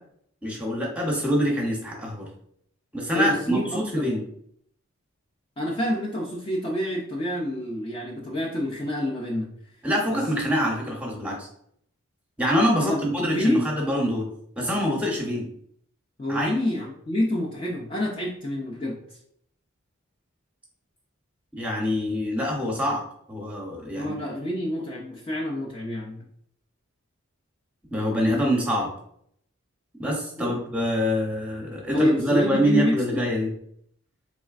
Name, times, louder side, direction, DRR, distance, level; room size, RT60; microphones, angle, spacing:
voice 1, 0.4-2.3 2.9-4.2 9.8-11.5 12.4-14.3 14.6-15.4 16.3-16.5 21.5-23.0 23.3-24.1 27.9-28.9 30.0-33.5, equal, 5° right, -1 dB, 0.7 m, -25 dB
voice 2, 3.1-4.1 5.6-9.5 10.1-10.2 12.8-13.0 13.3-13.6 16.2-19.0 24.0-26.2 30.4-30.6 31.9-33.2, left 1 dB, 25° left, -3 dB, 0.4 m, -27 dB
4.2 x 3.2 x 2.4 m, 0.69 s
head